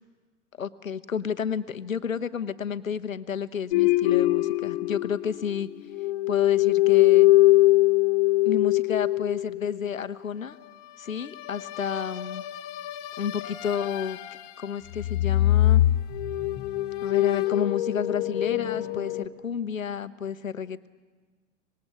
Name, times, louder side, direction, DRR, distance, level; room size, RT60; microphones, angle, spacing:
voice 1, 0.6-5.7 6.3-7.3 8.5-10.6 11.0-12.4 13.2-14.2 14.6-15.8 17.0-20.9, left 7 dB, 85° left, 12 dB, 1.0 m, -31 dB
sound 1, 3.7-5.6 5.9-9.8 11.4-14.6 14.9-19.2, left 17 dB, 45° left, 1.8 m, -23 dB
24.5 x 20.0 x 9.0 m, 1.4 s
figure-of-eight pair, 95°, 39 cm